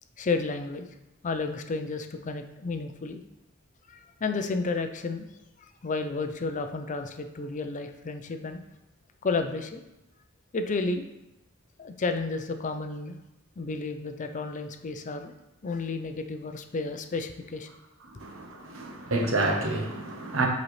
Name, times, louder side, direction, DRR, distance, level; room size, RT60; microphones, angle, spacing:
voice 1, 0.2-0.9 1.2-3.2 3.9-5.3 5.8-8.6 9.2-9.8 10.5-11.1 11.8-13.2 13.6-15.3 15.6-17.7, left 3 dB, 40° left, 8 dB, 0.5 m, -31 dB
voice 2, 18.2-20.5, right 2 dB, 70° right, 2 dB, 1.0 m, -28 dB
7.6 x 4.1 x 3.2 m, 0.92 s
head